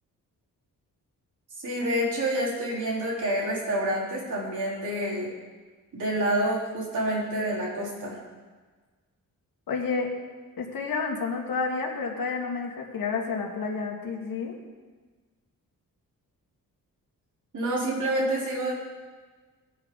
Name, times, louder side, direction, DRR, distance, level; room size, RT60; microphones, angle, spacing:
voice 1, 1.6-5.3 5.9-8.2 17.5-18.7, right 1 dB, 60° right, -5 dB, 4.4 m, -28 dB
voice 2, 9.7-10.1 10.6-14.5, left 4 dB, 80° left, 1 dB, 2.1 m, -30 dB
18.5 x 10.0 x 4.0 m, 1.4 s
wide cardioid pair, 165°, 34 cm